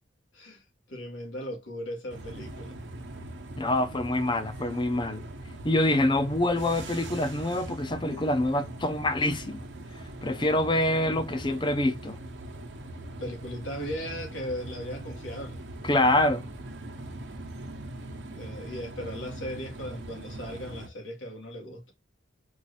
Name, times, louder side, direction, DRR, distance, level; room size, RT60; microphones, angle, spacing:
voice 1, 0.3-2.8 12.9-15.6 18.3-21.9, equal, 85° left, 2.0 m, -37 dB
sound 1, 2.1-20.9, right 1 dB, 70° right, 1.0 m, -41 dB
voice 2, 3.6-5.2 5.6-9.6 10.2-12.2 15.8-16.4, left 1 dB, 25° left, 0.7 m, -26 dB
4.6 x 2.7 x 4.1 m
head